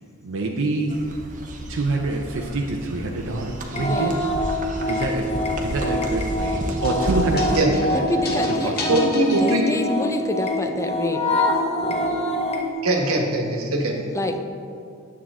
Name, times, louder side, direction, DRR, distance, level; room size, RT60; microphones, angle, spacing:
voice 1, 0.2-1.0 1.7-4.1 4.9-5.2 5.6-8.4 8.6-9.0, right 2 dB, 65° right, 0 dB, 0.6 m, -26 dB
sound 1, 0.9-7.6, right 1 dB, 35° right, 0.9 m, -32 dB
sound 2, 3.7-12.7, left 1 dB, 30° left, 0.9 m, -25 dB
voice 2, 3.7-4.3 7.9-9.1 9.4-11.3 14.1-14.4, left 2 dB, 15° left, 5 dB, 0.5 m, -27 dB
sound 3, 6.8-10.2, left 3 dB, 45° left, 1.2 m, -33 dB
voice 3, 8.9-9.6 12.8-14.0, right 2 dB, 80° right, 1 dB, 1.4 m, -21 dB
9.6 x 7.4 x 3.7 m, 2.5 s
head